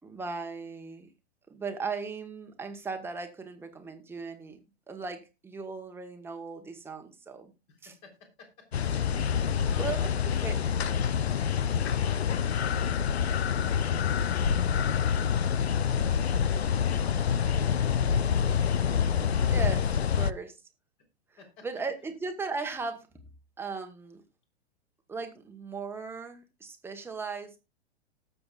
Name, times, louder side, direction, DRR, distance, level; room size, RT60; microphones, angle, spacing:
voice 1, 0.0-1.1 1.5-7.5 7.8-7.9 9.7-10.0 10.4-10.6 19.4-19.8 20.1-20.6 21.6-23.1 23.6-24.2 25.1-27.5, right 4 dB, 5° right, 4 dB, 1.3 m, -37 dB
voice 2, 7.7-8.9 9.1-10.1 10.4-15.1 16.6-17.9 18.3-18.7 21.4-21.7, left 4 dB, 40° left, 3 dB, 3.6 m, -54 dB
sound 1, 8.7-20.3, left 7 dB, 75° left, 0.6 m, -27 dB
19.5 x 6.9 x 2.4 m, 0.26 s
figure-of-eight pair, 105°, 32 cm